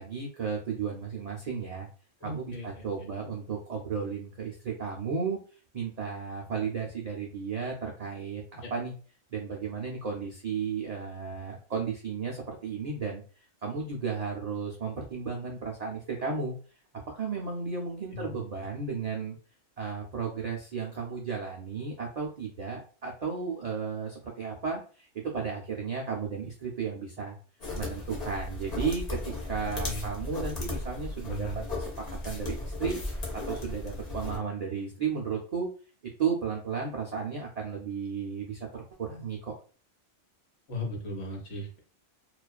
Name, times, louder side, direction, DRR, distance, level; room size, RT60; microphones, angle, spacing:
voice 1, 0.0-1.9 2.2-5.4 5.7-8.9 9.3-16.6 17.1-19.4 19.8-27.4 27.7-29.2 29.4-31.5 31.7-31.8 32.2-33.0 33.3-35.7 36.2-39.5, right 5 dB, 70° right, -1 dB, 0.3 m, -34 dB
voice 2, 2.2-2.7 8.6-8.7 18.1-18.6 29.8-30.4 31.3-31.7 40.7-41.8, left 1 dB, 65° left, 0 dB, 1.0 m, -38 dB
sound 1, 27.6-34.4, left 2 dB, 40° left, 0.7 m, -35 dB
2.3 x 2.3 x 2.3 m, 0.38 s
omnidirectional pair, 1.2 m